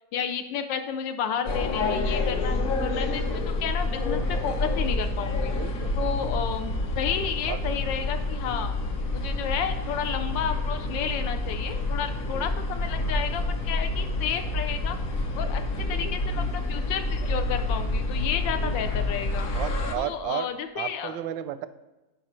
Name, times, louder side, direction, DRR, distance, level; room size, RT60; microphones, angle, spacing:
voice 1, 0.1-5.5 6.0-8.8 9.1-15.0 15.4-19.5 20.0-21.2, left 8 dB, 85° left, 8 dB, 1.3 m, -32 dB
sound 1, 1.5-20.0, left 2 dB, 55° left, 1.3 m, -28 dB
voice 2, 5.6-6.1 7.5-7.6 12.3-12.5 15.9-16.2 18.6-18.8 19.5-20.5 20.8-21.7, right 12 dB, 85° right, 13 dB, 1.3 m, -34 dB
15.5 x 5.3 x 3.1 m, 1.1 s
omnidirectional pair, 2.0 m